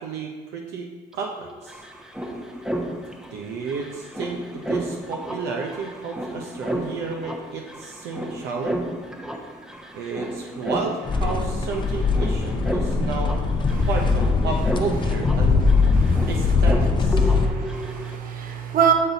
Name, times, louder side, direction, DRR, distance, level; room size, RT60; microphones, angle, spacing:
voice 1, 0.0-1.8 3.3-8.8 9.9-13.4 13.9-15.9 16.3-17.3, right 5 dB, 80° right, 0 dB, 0.7 m, -32 dB
sound 1, 1.1-1.2 1.4-18.2, right 1 dB, 5° right, 0.8 m, -33 dB
sound 2, 11.1-17.5, left 4 dB, 30° left, 0.6 m, -21 dB
voice 2, 16.0-16.3 17.2-18.9, right 8 dB, 55° right, 3 dB, 1.0 m, -25 dB
7.5 x 4.0 x 4.0 m, 1.3 s
cardioid pair, 110°, 17 cm